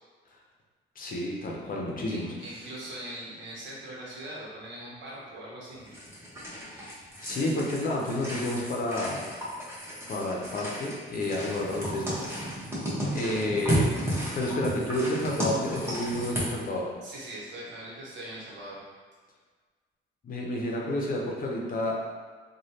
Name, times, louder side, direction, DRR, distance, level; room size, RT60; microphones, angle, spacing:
voice 1, 1.0-2.6 6.7-6.9 7.2-9.2 10.1-12.5 13.1-13.9 14.3-16.9 20.2-21.9, left 1 dB, 45° left, -2 dB, 0.6 m, -30 dB
voice 2, 2.1-5.8 17.0-18.8, right 1 dB, 65° right, -6 dB, 1.0 m, -41 dB
sound 1, 5.9-16.6, equal, 10° right, 1.0 m, -33 dB
3.1 x 2.3 x 2.8 m, 1.5 s
cardioid pair, 90°, 20 cm